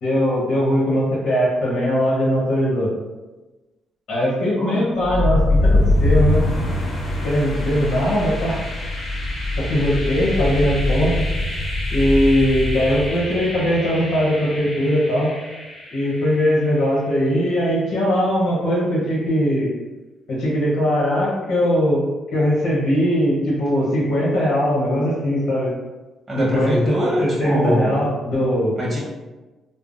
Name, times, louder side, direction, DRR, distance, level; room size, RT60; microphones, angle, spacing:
voice 1, 0.0-2.9 4.1-6.4 7.2-8.6 9.6-11.2 11.9-15.3 15.9-19.7 20.3-22.0 22.3-25.7 26.4-28.8, equal, 70° left, -6 dB, 0.9 m, -20 dB
sound 1, 5.0-16.9, left 1 dB, 50° left, 1.3 m, -23 dB
voice 2, 26.3-28.0 28.8-29.0, equal, 25° right, -5 dB, 1.0 m, -22 dB
3.4 x 2.0 x 2.5 m, 1.1 s
cardioid pair, 90°, 0 cm